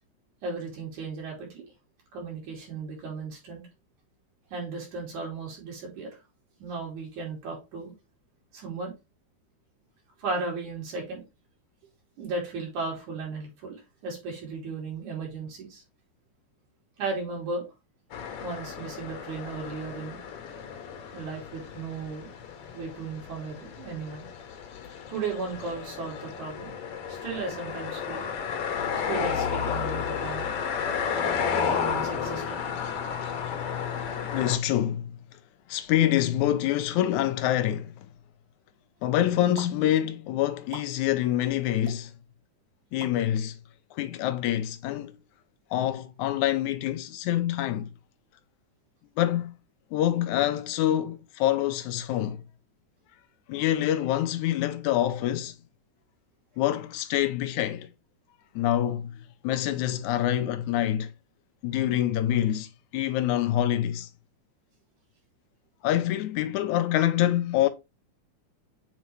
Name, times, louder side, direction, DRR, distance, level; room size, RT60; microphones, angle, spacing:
voice 1, 0.4-1.7 2.1-3.6 4.5-6.1 6.6-7.9 8.5-8.9 10.2-11.2 12.2-13.8 14.0-15.8 17.0-17.7 18.4-20.2 21.1-22.3 22.7-24.2 25.1-26.8 27.1-28.3 29.1-30.5 31.5-32.6, right 4 dB, 75° right, 4.2 m, -35 dB
sound 1, 18.1-34.6, left 7 dB, 60° left, 1.8 m, -32 dB
voice 2, 34.3-35.1 35.7-38.1 39.0-42.1 42.9-43.6 43.9-45.2 45.7-47.9 49.2-49.5 49.9-52.4 53.5-55.5 56.6-57.9 58.6-59.2 59.4-61.1 61.6-64.1 65.8-67.7, left 12 dB, 80° left, 2.0 m, -26 dB
sound 2, 39.6-39.7 40.7-40.9 41.9-42.0 43.0-43.2, right 5 dB, 60° right, 2.2 m, -41 dB
7.3 x 4.1 x 3.2 m
omnidirectional pair, 3.4 m